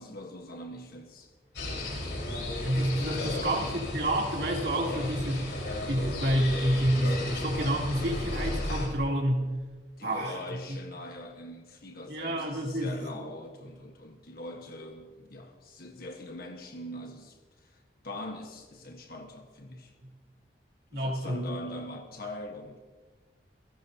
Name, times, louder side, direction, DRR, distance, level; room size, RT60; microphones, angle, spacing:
voice 1, 0.0-1.3 3.1-3.8 4.8-5.2 10.0-19.9 20.9-22.8, left 1 dB, 60° left, 3 dB, 1.3 m, -42 dB
sound 1, 1.6-8.9, left 1 dB, 80° left, 4.6 m, -34 dB
voice 2, 2.6-5.4 5.9-9.5 10.0-10.4 12.1-12.9 13.2-13.3 20.9-21.5, right 1 dB, 65° right, -1 dB, 3.0 m, -28 dB
29.0 x 17.5 x 2.8 m, 1.3 s
head